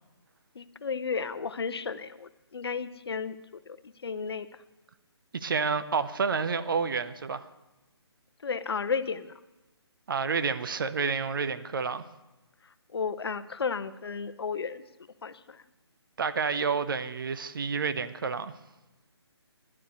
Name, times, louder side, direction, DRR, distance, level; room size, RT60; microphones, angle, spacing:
voice 1, 0.5-3.4 3.7-4.5 8.4-9.3 12.9-14.9 15.2-15.6, left 5 dB, 65° left, 0.7 m, -33 dB
voice 2, 5.3-7.5 10.1-12.0 16.2-18.5, right 5 dB, 50° right, 0.9 m, -29 dB
11.0 x 9.4 x 8.3 m
figure-of-eight pair, 155°, 14 cm